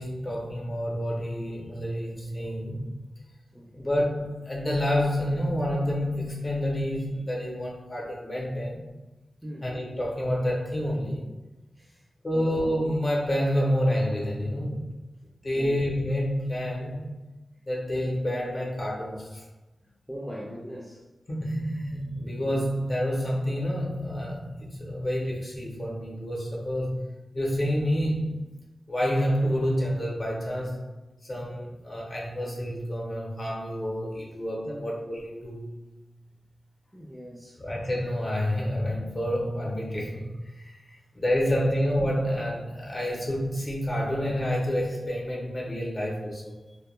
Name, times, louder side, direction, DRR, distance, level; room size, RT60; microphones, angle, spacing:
voice 1, 0.0-3.0 3.8-8.9 9.6-11.2 12.2-14.9 15.4-17.2 17.6-19.5 21.3-27.0 27.3-28.5 28.9-30.9 31.3-35.6 37.6-46.5, equal, 40° left, -3 dB, 0.7 m, -28 dB
voice 2, 3.5-3.9 9.4-9.7 11.8-12.0 12.3-12.7 15.5-15.8 20.1-21.0 34.7-35.0 36.9-37.6, equal, 5° right, -4 dB, 0.4 m, -40 dB
2.2 x 2.1 x 3.0 m, 1.0 s
wide cardioid pair, 120°, 0 cm